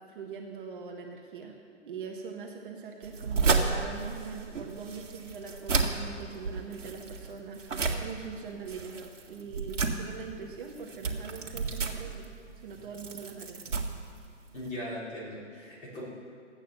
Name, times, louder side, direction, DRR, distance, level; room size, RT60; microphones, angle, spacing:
voice 1, 0.1-1.6 1.9-12.3 12.6-13.6, right 5 dB, 45° right, 1 dB, 1.3 m, -42 dB
sound 1, 3.0-14.8, right 4 dB, 80° right, 1.8 m, -32 dB
voice 2, 14.5-16.0, left 1 dB, 20° left, -5 dB, 3.4 m, -39 dB
14.0 x 8.9 x 6.9 m, 2.2 s
hypercardioid pair, 150°, 38 cm